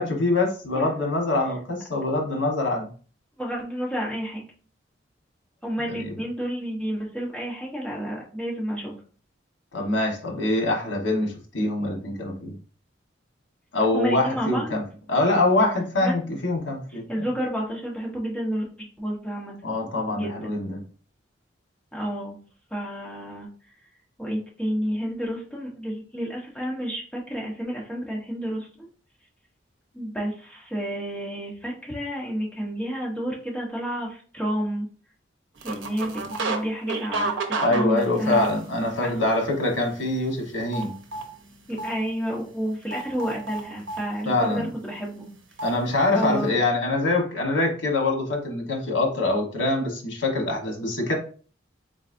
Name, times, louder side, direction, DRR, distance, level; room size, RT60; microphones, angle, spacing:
voice 1, 0.0-2.9 5.9-6.1 9.7-12.5 13.7-14.8 15.1-17.0 19.6-20.8 37.6-40.9 44.2-44.7 45.6-51.1, left 2 dB, 75° left, 1.2 m, -24 dB
voice 2, 3.4-4.5 5.6-8.9 13.9-14.8 16.0-16.2 17.1-18.7 19.0-19.5 20.1-20.5 21.9-22.4 22.7-23.5 24.2-28.7 29.9-34.9 35.6-37.4 37.7-39.1 41.7-45.3 46.1-46.6, equal, 5° left, 1.1 m, -30 dB
sound 1, 35.6-36.6 36.9-39.0 39.4-39.7 39.9-41.3 41.8-41.9 42.9-44.0 45.6-45.7, right 3 dB, 75° right, 0.7 m, -30 dB
4.1 x 3.8 x 2.6 m
head